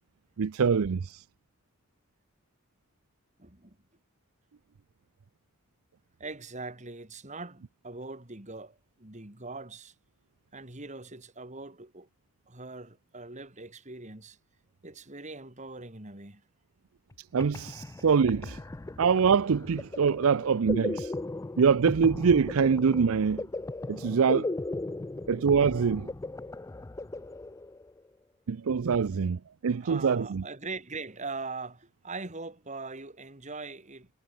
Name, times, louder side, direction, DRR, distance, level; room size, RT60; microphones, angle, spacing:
voice 1, 0.4-1.2 17.3-18.6 19.0-21.1 21.6-23.5 23.9-24.5 25.3-26.1 28.5-30.4, right 6 dB, 65° right, 0.5 m, -24 dB
voice 2, 3.4-3.8 6.2-9.9 10.5-12.1 12.5-14.4 14.8-16.4 29.8-34.1, right 3 dB, 30° right, 2.7 m, -41 dB
sound 1, 17.1-17.2 17.4-28.0, left 2 dB, 15° left, 0.3 m, -37 dB
head